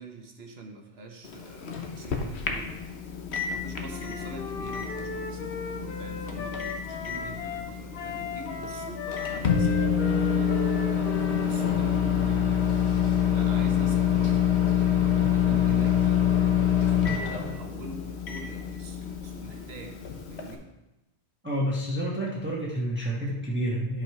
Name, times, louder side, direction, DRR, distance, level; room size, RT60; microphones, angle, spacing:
voice 1, 0.0-2.8 3.2-10.9 11.3-12.6 13.3-14.5 14.8-16.4 17.1-20.0 20.3-20.7, right 3 dB, 70° right, 4 dB, 1.3 m, -45 dB
Microwave oven, 1.2-20.5, left 8 dB, 85° left, 1.2 m, -27 dB
Wind instrument woodwind instrument, 3.9-7.7 7.9-12.0, left 5 dB, 65° left, 1.0 m, -37 dB
voice 2, 15.2-15.9 21.4-24.0, equal, 10° right, -3 dB, 1.0 m, -30 dB
10.5 x 4.9 x 4.7 m, 0.97 s
omnidirectional pair, 1.1 m